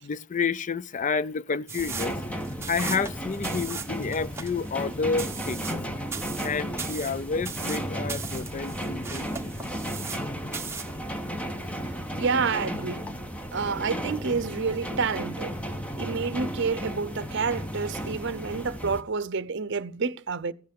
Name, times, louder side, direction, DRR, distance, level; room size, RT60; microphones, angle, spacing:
voice 1, 0.0-2.4 2.7-5.7 6.4-9.5, left 5 dB, 40° left, 0.5 m, -30 dB
sound 1, 1.7-10.3 10.5-11.0, right 5 dB, 15° right, 1.3 m, -37 dB
sound 2, 1.8-19.0, equal, 5° left, 0.9 m, -34 dB
voice 2, 12.2-13.0 13.5-15.5 16.0-20.5, right 5 dB, 60° right, 0.7 m, -29 dB
15.5 x 8.1 x 5.3 m
head